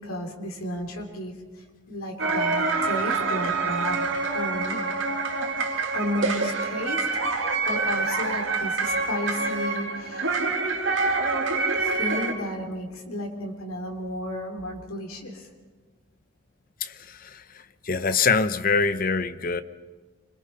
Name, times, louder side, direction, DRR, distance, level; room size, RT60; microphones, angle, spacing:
voice 1, 0.0-4.8 5.9-10.3 11.7-15.5, left 1 dB, 90° left, 3.2 m, -33 dB
sound 1, 2.2-12.3, right 3 dB, 60° right, 2.3 m, -26 dB
voice 2, 16.8-19.6, left 4 dB, 40° left, 0.8 m, -25 dB
27.5 x 23.0 x 5.6 m
head